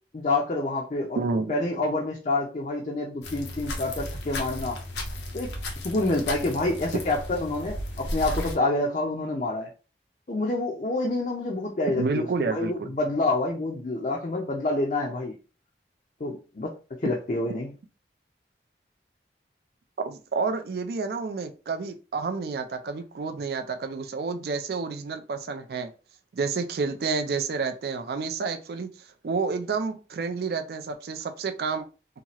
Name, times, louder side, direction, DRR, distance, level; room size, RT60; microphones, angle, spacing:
voice 1, 0.1-1.2 1.5-4.8 5.3-9.7 10.3-15.3 16.2-16.7 17.0-17.7, left 2 dB, 40° left, -2 dB, 0.5 m, -27 dB
voice 2, 1.2-1.5 11.9-12.9 20.0-25.9 26.3-28.9 29.2-31.9, right 4 dB, 60° right, 6 dB, 0.4 m, -29 dB
sound 1, 3.2-8.6, left 1 dB, 80° left, 0.7 m, -34 dB
2.8 x 2.3 x 2.9 m, 0.34 s
head